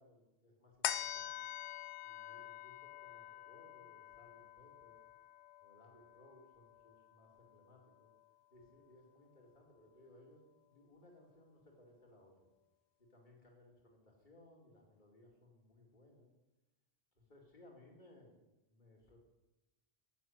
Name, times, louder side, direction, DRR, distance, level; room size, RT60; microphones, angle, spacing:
voice 1, 0.0-1.4 2.0-5.0 5.6-8.1 8.5-10.4 10.7-12.5 13.0-16.3 17.1-18.4 18.7-19.2, left 1 dB, 45° left, 0 dB, 2.7 m, -63 dB
sound 1, 0.8-7.6 8.0-8.1, left 11 dB, 90° left, 0.9 m, -46 dB
10.0 x 7.3 x 9.2 m, 1.0 s
omnidirectional pair, 1.1 m